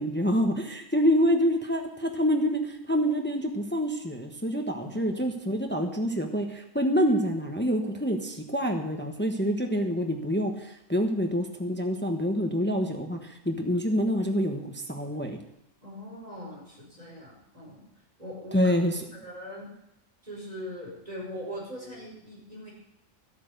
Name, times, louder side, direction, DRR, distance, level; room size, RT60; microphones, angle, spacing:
voice 1, 0.0-15.4 18.5-19.1, equal, 10° left, 3 dB, 1.0 m, -27 dB
voice 2, 4.8-5.3 15.8-17.9 18.2-18.7 19.1-19.7 20.2-22.7, equal, 30° right, -4 dB, 5.3 m, -41 dB
13.0 x 8.6 x 6.6 m, 0.83 s
omnidirectional pair, 1.4 m